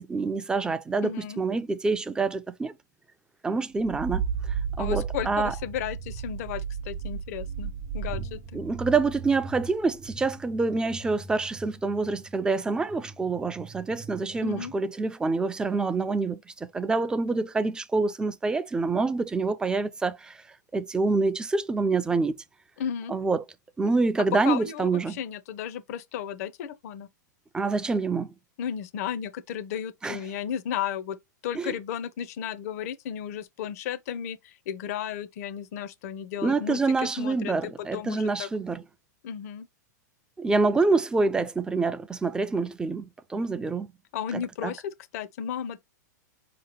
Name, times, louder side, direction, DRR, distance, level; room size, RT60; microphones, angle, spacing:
voice 1, 0.0-2.7 3.4-5.5 8.5-20.4 20.7-22.3 23.1-23.4 23.8-25.2 27.5-28.3 30.0-30.2 31.5-31.7 36.4-38.8 40.4-43.9 44.3-44.7, right 3 dB, 10° right, 0.3 m, -26 dB
voice 2, 1.0-1.4 4.8-8.6 14.4-14.7 22.8-23.1 24.4-27.1 28.6-31.2 31.4-38.5 39.2-39.7 44.1-45.8, left 9 dB, 55° left, 0.5 m, -34 dB
sound 1, 3.8-14.8, right 6 dB, 35° right, 0.7 m, -36 dB
4.7 x 2.9 x 2.9 m
hypercardioid pair, 115°, 10 cm